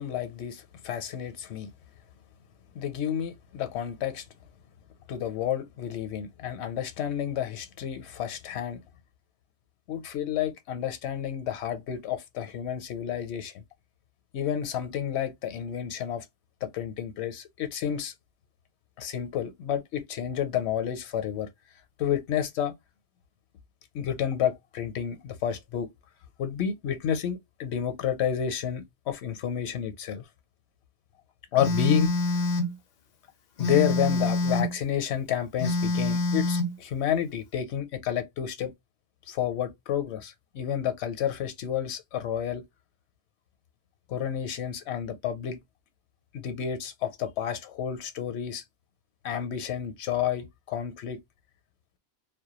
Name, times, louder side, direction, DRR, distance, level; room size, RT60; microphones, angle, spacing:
voice 1, 0.0-1.7 2.7-4.3 5.1-8.8 9.9-13.5 14.3-16.3 16.6-18.1 19.0-21.5 22.0-22.7 23.9-25.9 26.4-30.2 31.5-32.1 33.6-38.7 39.3-42.6 44.1-45.6 46.3-48.6 49.2-51.2, left 9 dB, 75° left, 0.8 m, -30 dB
Telephone, 31.6-32.7 33.6-34.7 35.6-36.7, left 2 dB, 60° left, 0.5 m, -26 dB
2.2 x 2.2 x 2.8 m
omnidirectional pair, 1.1 m